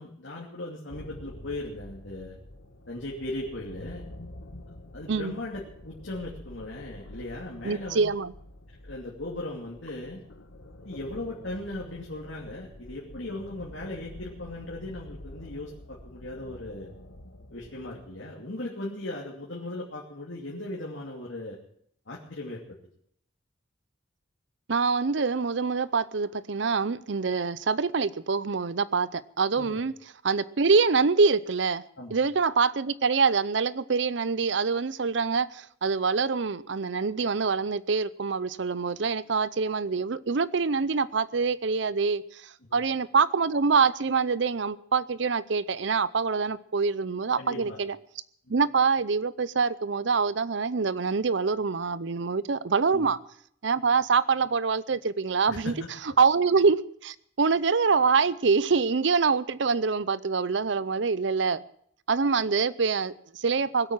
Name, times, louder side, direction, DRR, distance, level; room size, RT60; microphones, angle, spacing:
voice 1, 0.0-2.4 2.9-4.0 4.9-8.0 8.8-10.2 10.8-16.9 17.5-21.6 22.1-22.6 29.6-29.8 32.0-32.2 42.7-42.8 47.3-47.8 52.9-53.1 55.4-55.9, left 1 dB, 70° left, 2.8 m, -38 dB
sound 1, 0.9-18.2, left 1 dB, 90° left, 1.5 m, -47 dB
voice 2, 7.6-8.3 24.7-29.9 30.2-31.8 32.1-48.0 48.5-53.2 53.6-55.7 56.2-61.6 62.1-63.9, right 5 dB, 65° right, 0.6 m, -25 dB
20.0 x 8.5 x 7.4 m
head